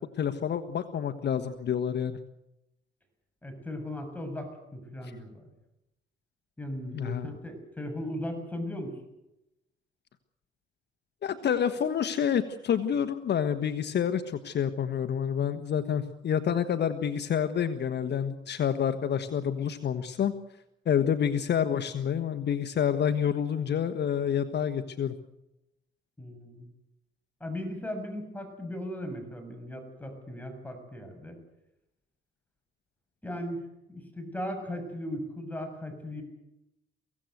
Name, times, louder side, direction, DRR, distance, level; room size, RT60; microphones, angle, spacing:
voice 1, 0.2-2.2 6.9-7.3 11.2-20.3 20.8-25.1, left 8 dB, 60° left, 10 dB, 1.3 m, -28 dB
voice 2, 3.4-5.4 6.6-9.0 26.2-26.7 27.4-31.4 33.2-33.6 33.9-36.2, left 1 dB, 10° left, 5 dB, 7.3 m, -37 dB
24.0 x 16.5 x 8.0 m, 0.88 s
cardioid pair, 90°, 20 cm